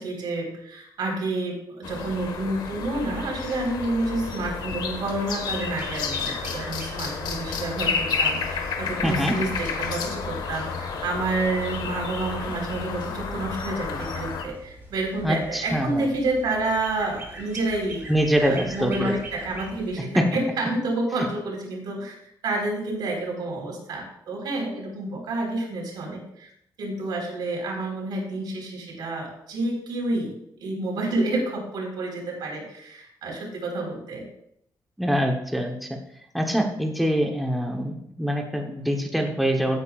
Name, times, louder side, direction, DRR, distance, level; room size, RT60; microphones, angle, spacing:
voice 1, 0.0-18.1 18.4-22.2 22.4-26.5 26.8-30.3 30.6-34.3, right 2 dB, 80° right, 0 dB, 4.1 m, -29 dB
sound 1, 1.8-14.4, left 5 dB, 90° left, 1.4 m, -31 dB
sound 2, 5.5-20.0, right 1 dB, 30° right, 3.3 m, -43 dB
voice 2, 9.0-9.3 15.2-16.0 18.1-19.2 20.0-20.3 35.0-36.0 36.3-39.8, equal, ahead, 2 dB, 0.9 m, -24 dB
16.0 x 8.7 x 2.4 m, 0.72 s
wide cardioid pair, 165°, 7 cm